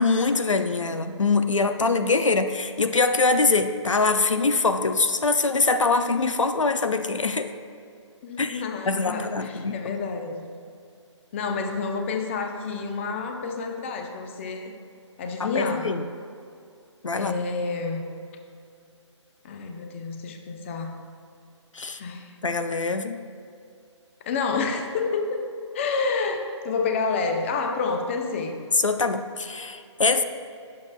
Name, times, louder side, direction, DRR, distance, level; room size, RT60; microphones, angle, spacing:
voice 1, 0.0-7.5 8.4-10.0 15.4-16.0 17.0-17.3 21.7-22.0 22.4-23.2 28.8-30.2, left 3 dB, 80° left, 9 dB, 0.6 m, -23 dB
voice 2, 8.2-10.5 11.3-14.7 15.2-15.9 17.2-18.0 19.4-20.9 22.0-22.3 24.2-25.2 25.7-28.6, left 4 dB, 25° left, 4 dB, 0.7 m, -29 dB
19.0 x 7.4 x 2.2 m, 2.4 s
figure-of-eight pair, 150°, 16 cm